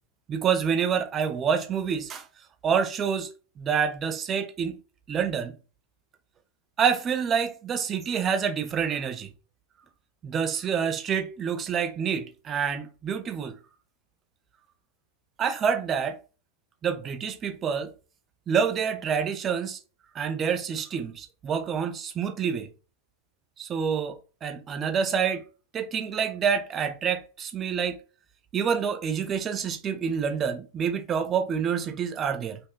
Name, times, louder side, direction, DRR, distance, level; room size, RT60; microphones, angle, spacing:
voice 1, 0.3-2.2 2.6-3.3 3.6-4.8 5.1-5.6 6.8-9.3 10.2-13.5 15.4-16.2 16.8-17.9 18.5-19.8 20.2-22.7 23.6-25.4 25.7-28.0 28.5-32.6, right 7 dB, 25° right, 0.4 m, -27 dB
2.8 x 2.1 x 2.2 m
figure-of-eight pair, 90°, 0 cm